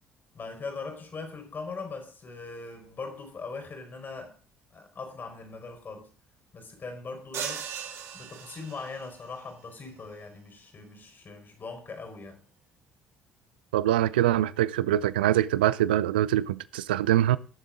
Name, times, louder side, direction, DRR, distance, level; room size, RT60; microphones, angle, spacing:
voice 1, 0.3-4.4 4.7-6.1 6.5-7.7 8.1-12.5, left 4 dB, 40° left, 4.7 m, -40 dB
sound 1, 7.3-9.1, right 7 dB, 60° right, 2.1 m, -37 dB
voice 2, 13.7-17.4, right 13 dB, 80° right, 0.5 m, -24 dB
17.5 x 7.4 x 3.8 m
hypercardioid pair, 55°, 5 cm